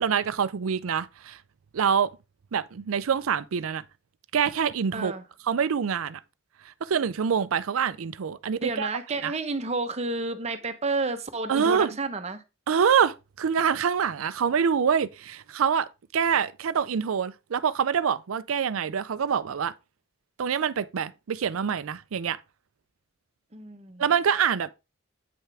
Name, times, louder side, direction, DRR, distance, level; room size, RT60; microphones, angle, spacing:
voice 1, 0.0-1.4 1.7-2.1 2.5-3.8 4.3-5.1 5.5-6.2 6.6-8.9 9.2-9.3 11.5-11.9 12.7-19.7 20.4-22.4 24.0-24.7, right 7 dB, 85° right, 0.5 m, -25 dB
voice 2, 4.9-5.2 8.6-12.4 23.5-24.0, right 3 dB, 30° right, 0.9 m, -30 dB
8.5 x 5.6 x 3.4 m
head